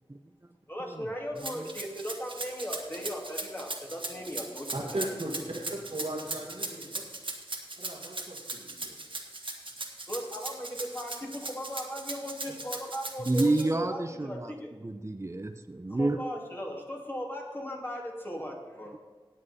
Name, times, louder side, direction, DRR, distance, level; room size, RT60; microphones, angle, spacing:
voice 1, 0.7-5.1 10.1-14.7 15.9-19.0, equal, 25° left, -1 dB, 2.7 m, -37 dB
voice 2, 1.4-1.7 13.2-14.5 14.8-16.2, right 2 dB, 30° right, 8 dB, 0.7 m, -29 dB
Rattle (instrument), 1.4-13.6, right 2 dB, 60° right, 1.6 m, -38 dB
voice 3, 4.7-7.1 7.8-9.0, right 1 dB, 90° right, -2 dB, 2.2 m, -37 dB
18.0 x 7.5 x 4.3 m, 1.4 s
wide cardioid pair, 60°, 10 cm